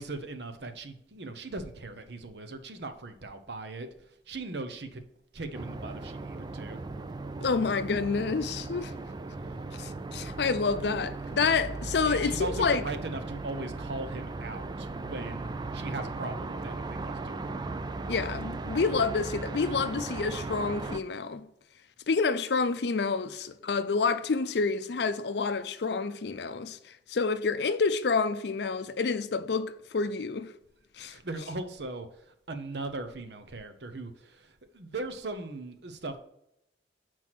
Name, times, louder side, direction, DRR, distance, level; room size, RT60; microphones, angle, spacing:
voice 1, 0.0-3.9 4.3-5.0 5.3-6.8 12.1-17.7 31.0-36.2, right 2 dB, 65° right, 0.8 m, -39 dB
sound 1, 5.5-21.0, right 3 dB, 25° right, 0.3 m, -37 dB
voice 2, 7.4-8.9 9.8-12.8 18.1-21.4 22.1-26.8 27.1-30.5 31.0-31.1, left 4 dB, 65° left, 0.5 m, -28 dB
5.9 x 4.6 x 6.0 m
head